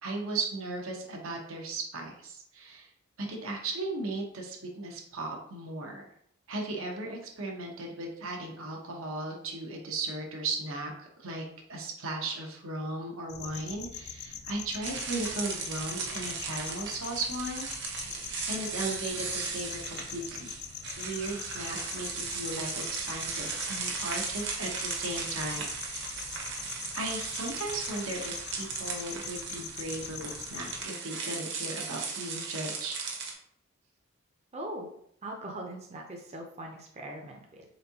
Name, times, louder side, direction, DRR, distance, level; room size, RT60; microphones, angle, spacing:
voice 1, 0.0-2.9 3.2-6.1 6.5-11.4 11.7-17.7 18.5-20.6 21.0-26.2 26.9-33.0, right 2 dB, 85° right, 0 dB, 1.0 m, -36 dB
sound 1, 13.3-30.9, left 8 dB, 55° left, 0.3 m, -43 dB
sound 2, 14.8-33.3, right 5 dB, 60° right, 0.9 m, -37 dB
voice 2, 34.5-34.9 35.2-37.6, right 1 dB, 30° right, 1 dB, 0.6 m, -40 dB
4.3 x 3.5 x 2.8 m, 0.69 s
head